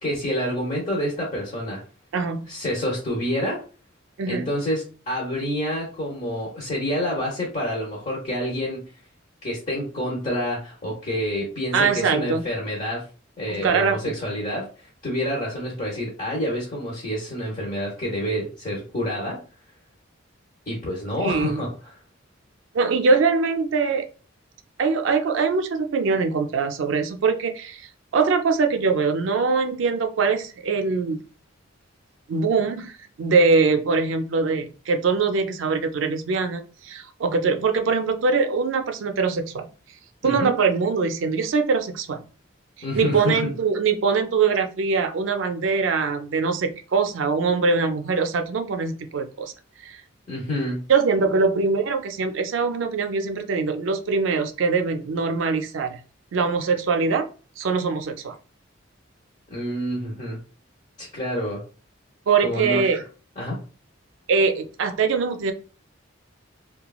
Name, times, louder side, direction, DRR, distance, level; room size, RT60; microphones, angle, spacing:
voice 1, 0.0-1.8 2.5-3.6 4.3-8.8 9.4-13.0 13.4-19.4 20.7-22.0 40.2-40.5 42.8-43.5 50.3-50.8 59.5-60.4 61.0-61.6 62.4-62.9 63.4-63.6, equal, 40° left, -4 dB, 0.7 m, -28 dB
voice 2, 2.1-2.5 4.2-4.5 11.7-12.4 13.5-14.1 21.2-21.6 22.7-24.0 24.8-31.2 32.3-39.7 40.2-42.2 42.9-49.5 49.8-50.0 50.9-56.0 56.3-57.3 57.6-58.4 62.3-63.0 64.3-65.5, right 4 dB, 75° right, 7 dB, 0.4 m, -22 dB
2.9 x 2.3 x 2.3 m, 0.37 s
head